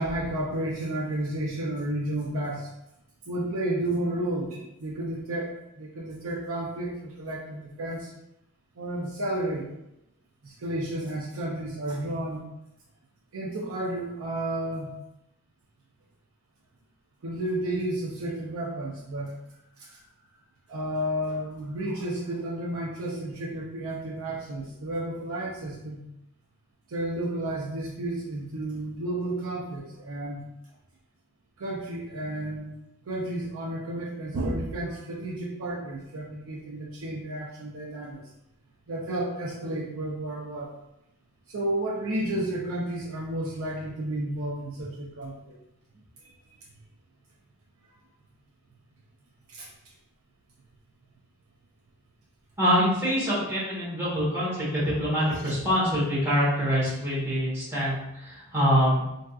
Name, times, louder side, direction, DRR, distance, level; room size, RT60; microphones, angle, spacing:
voice 1, 0.0-2.7 3.3-8.1 8.8-9.7 10.4-12.5 13.3-14.9 17.2-19.4 19.8-20.0 20.7-26.0 26.9-30.5 31.6-32.7 33.1-38.2 38.9-40.7 41.5-45.5 49.5-49.7, right 1 dB, 65° right, -3 dB, 0.5 m, -32 dB
voice 2, 52.6-58.0 58.2-59.0, equal, 10° right, -10 dB, 1.2 m, -25 dB
3.4 x 2.6 x 2.3 m, 0.85 s
head